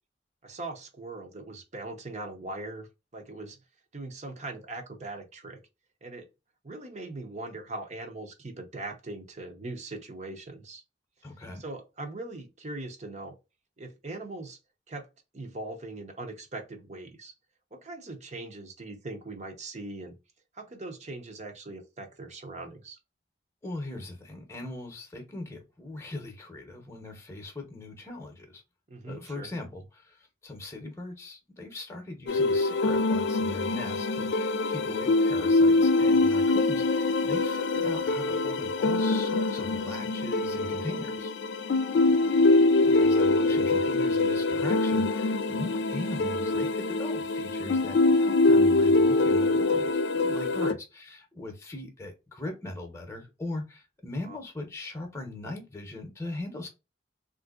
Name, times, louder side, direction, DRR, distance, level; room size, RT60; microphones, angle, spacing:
voice 1, 0.4-2.9 3.1-3.6 3.9-5.6 6.0-6.3 6.6-10.8 11.5-13.3 13.8-14.6 14.9-15.1 15.3-17.3 17.7-20.2 20.5-23.0 28.9-29.5 50.6-50.7 54.2-54.4, right 2 dB, 40° right, 0.7 m, -40 dB
voice 2, 11.2-11.6 23.6-28.6 29.0-41.3 42.8-56.7, left 2 dB, 15° left, 0.8 m, -40 dB
sound 1, 32.3-50.7, left 3 dB, 65° left, 0.4 m, -24 dB
3.5 x 2.5 x 2.4 m
head